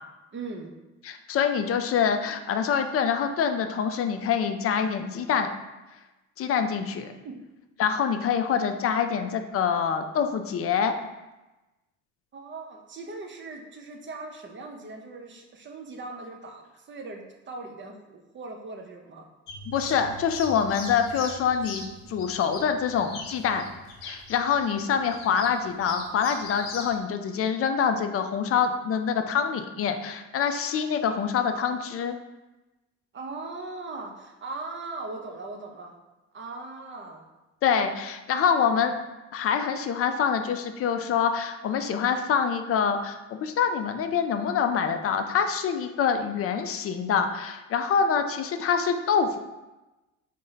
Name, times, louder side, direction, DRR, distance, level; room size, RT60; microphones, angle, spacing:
voice 1, 0.3-0.7 7.2-7.4 12.3-19.3 33.1-35.9 36.3-37.2, right 3 dB, 30° right, 2 dB, 0.6 m, -39 dB
voice 2, 1.0-5.5 6.4-7.1 7.8-10.9 19.7-23.6 24.0-32.1 37.6-38.9 39.3-49.4, left 7 dB, 40° left, 7 dB, 0.4 m, -25 dB
sound 1, 19.5-26.9, left 3 dB, 80° left, 0.7 m, -41 dB
3.8 x 2.1 x 3.9 m, 1.1 s
hypercardioid pair, 70°, 38 cm